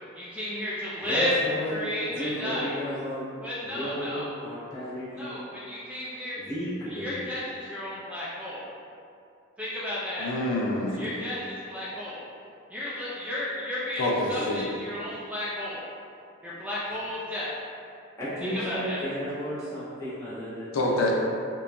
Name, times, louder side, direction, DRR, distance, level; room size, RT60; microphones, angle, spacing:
voice 1, 0.1-1.3 1.7-2.8 3.4-4.3 5.1-6.4 6.9-8.7 9.6-10.3 11.0-12.2 12.7-15.8 16.4-17.5 18.4-19.0, left 1 dB, 5° right, -9 dB, 0.3 m, -33 dB
voice 2, 1.0-3.2 3.6-5.4 6.3-7.2 18.2-21.1, equal, 15° left, -11 dB, 0.8 m, -34 dB
voice 3, 10.2-11.0 14.0-14.7 20.7-21.1, left 1 dB, 75° left, -2 dB, 0.4 m, -26 dB
2.8 x 2.2 x 2.4 m, 2.5 s
head